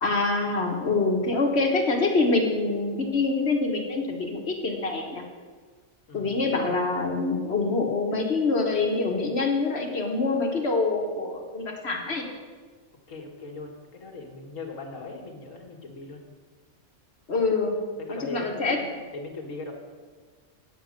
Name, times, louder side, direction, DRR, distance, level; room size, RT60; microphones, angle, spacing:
voice 1, 0.0-5.2 6.1-12.2 17.3-17.8 18.2-18.8, left 3 dB, 55° left, 2 dB, 1.5 m, -25 dB
voice 2, 6.1-6.6 13.1-16.2 17.9-18.9 19.1-19.7, left 3 dB, 90° left, 1 dB, 2.0 m, -39 dB
9.0 x 8.1 x 6.5 m, 1.5 s
omnidirectional pair, 1.3 m